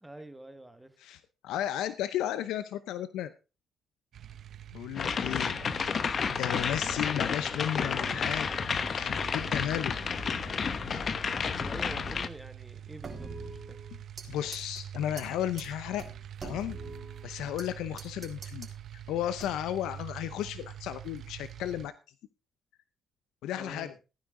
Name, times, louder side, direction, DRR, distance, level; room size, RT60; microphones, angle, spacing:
voice 1, 0.0-1.2 11.5-13.8 23.6-24.0, right 1 dB, 10° right, 9 dB, 1.6 m, -47 dB
voice 2, 1.0-3.3 4.7-5.6 6.3-8.5 8.9-10.0 10.9-11.3 14.3-16.0 16.4-16.8 17.2-18.7 19.1-21.9 23.4-23.9, left 11 dB, 90° left, 13 dB, 0.7 m, -34 dB
sound 1, 4.1-21.9, right 10 dB, 65° right, 0.8 m, -45 dB
sound 2, 5.0-12.3, left 6 dB, 45° left, 1.0 m, -31 dB
sound 3, 13.0-14.3 14.5-14.8 15.2-15.3 15.6-15.7 16.0-17.7 18.0-18.7 19.4-19.8, right 3 dB, 40° right, 3.7 m, -44 dB
15.5 x 9.7 x 3.8 m, 0.31 s
cardioid pair, 90°, 0 cm